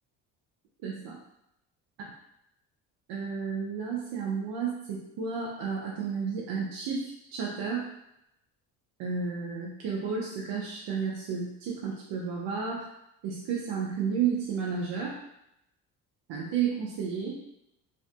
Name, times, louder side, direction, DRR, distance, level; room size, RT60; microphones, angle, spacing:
voice 1, 0.8-1.2 3.1-7.9 9.0-12.9 13.2-15.2 16.3-17.4, right 6 dB, 65° right, -3 dB, 0.7 m, -32 dB
2.6 x 2.5 x 2.2 m, 0.82 s
supercardioid pair, 75°, 43 cm